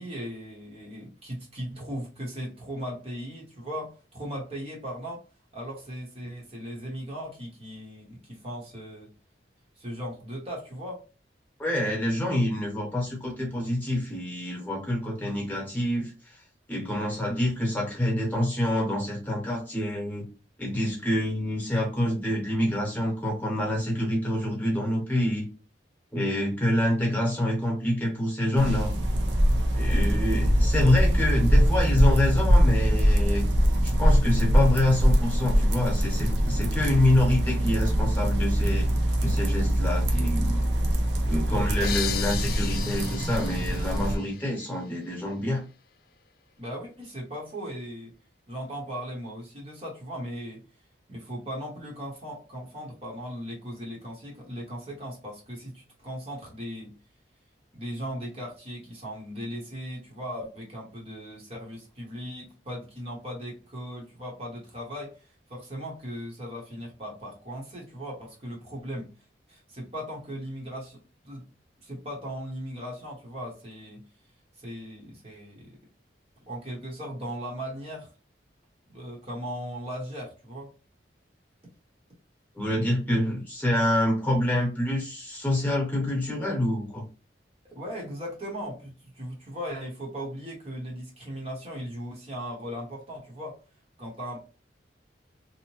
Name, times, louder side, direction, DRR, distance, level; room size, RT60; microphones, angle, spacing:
voice 1, 0.0-5.2 5.5-9.1 9.8-11.0 36.8-36.9 37.8-38.0 41.4-41.9 46.6-48.1 48.5-50.6 51.1-56.9 57.7-69.1 69.5-71.5 71.8-74.0 74.6-75.7 76.4-78.1 78.9-80.7 87.6-93.6 94.0-94.4, equal, 35° right, 0.9 m, -38 dB
voice 2, 11.6-16.4 16.7-20.3 20.6-25.5 26.1-28.9 29.7-33.5 33.8-38.9 39.2-40.6 41.3-45.6 82.5-87.0, left 1 dB, 10° left, 1.0 m, -26 dB
sound 1, 28.6-44.2, equal, 70° right, 0.6 m, -23 dB
sound 2, 41.8-45.4, left 9 dB, 55° left, 0.3 m, -36 dB
2.8 x 2.1 x 3.0 m
head